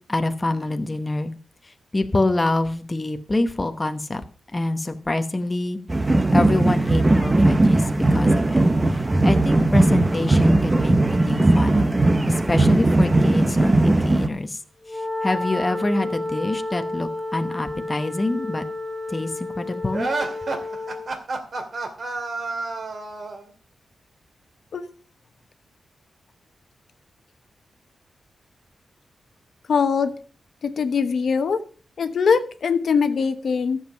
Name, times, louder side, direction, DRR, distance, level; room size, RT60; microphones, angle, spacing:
voice 1, 0.1-1.3 1.6-4.2 4.5-5.8 6.3-8.6 8.9-10.9 11.2-12.0 12.3-14.6 14.9-18.6 19.1-20.1, left 2 dB, 20° left, 7 dB, 0.9 m, -26 dB
sound 1, 5.9-14.3, right 2 dB, 20° right, 0.9 m, -18 dB
Wind instrument woodwind instrument, 14.8-21.1, left 2 dB, ahead, 1.7 m, -31 dB
sound 2, 19.9-23.5, right 3 dB, 45° right, 2.2 m, -29 dB
voice 2, 29.7-30.1 30.6-31.6 32.0-33.9, left 5 dB, 60° left, 9 dB, 1.0 m, -22 dB
13.5 x 7.4 x 5.7 m, 0.41 s
wide cardioid pair, 145°, 0 cm